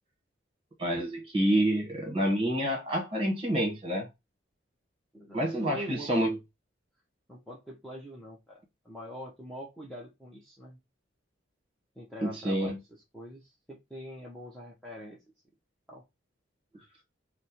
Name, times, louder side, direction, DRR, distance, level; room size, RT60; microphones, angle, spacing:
voice 1, 0.8-4.1 5.3-6.4 12.2-12.8, right 1 dB, 25° right, 1.2 m, -28 dB
voice 2, 5.1-6.1 7.3-10.8 12.0-12.8 13.1-15.2 15.9-16.0, equal, ahead, 0.7 m, -44 dB
3.3 x 2.1 x 4.2 m
head